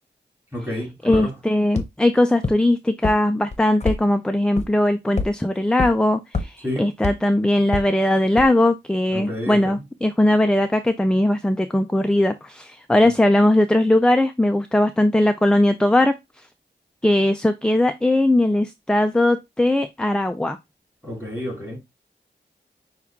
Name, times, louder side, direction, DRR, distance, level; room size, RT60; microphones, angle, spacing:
voice 1, 0.5-1.3 6.6-6.9 9.1-9.6 21.0-21.8, left 1 dB, 10° right, 2.7 m, -29 dB
voice 2, 1.0-16.1 17.0-20.6, left 1 dB, 5° left, 0.4 m, -19 dB
sound 1, 1.1-1.2 1.8-1.9 2.4-2.5 3.0-3.1 3.5-4.0 4.6-4.7 5.2-5.3 5.8-5.9 6.3-6.4 7.0-7.1 7.7-7.8 8.4-8.5, left 4 dB, 35° left, 0.9 m, -23 dB
6.1 x 2.4 x 3.5 m
wide cardioid pair, 70°, 19 cm